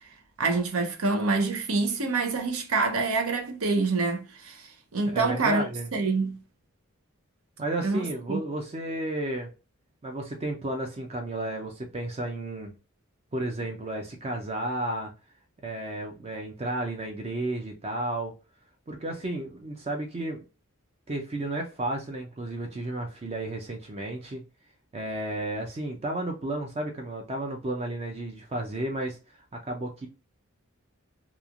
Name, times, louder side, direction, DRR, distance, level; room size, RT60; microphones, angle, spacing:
voice 1, 0.4-5.6 5.9-6.4 7.8-8.4, right 3 dB, 85° right, 0.7 m, -26 dB
voice 2, 5.0-5.9 7.6-9.5 10.0-12.7 13.3-15.1 15.6-18.3 18.9-20.4 21.1-24.4 24.9-29.2 29.5-30.1, right 1 dB, 30° right, 0.4 m, -32 dB
3.0 x 2.4 x 2.4 m
head